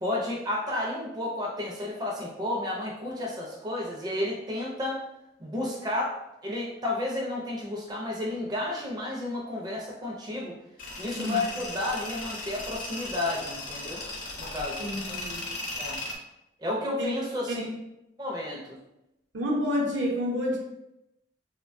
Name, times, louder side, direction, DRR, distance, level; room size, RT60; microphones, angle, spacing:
voice 1, 0.0-5.0 5.4-6.2 6.4-10.6 11.0-14.0 14.4-15.2 15.8-16.0 16.6-17.7 18.2-18.8, left 1 dB, 20° right, -3 dB, 0.4 m, -32 dB
Tools, 10.8-16.2, left 2 dB, 50° left, 0.5 m, -37 dB
voice 2, 14.8-15.4 17.0-17.1 17.5-17.6 19.3-20.6, equal, 75° right, -2 dB, 0.6 m, -29 dB
2.9 x 2.1 x 2.5 m, 0.88 s
head